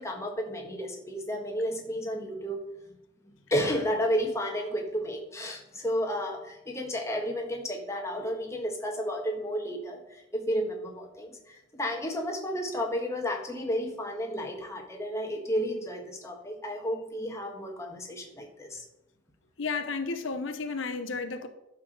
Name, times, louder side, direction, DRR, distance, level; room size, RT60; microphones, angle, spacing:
voice 1, 0.0-2.6 3.5-18.8, equal, 15° left, 2 dB, 1.5 m, -32 dB
voice 2, 19.6-21.5, left 4 dB, 75° left, 8 dB, 0.8 m, -32 dB
11.5 x 4.9 x 6.4 m, 0.88 s
head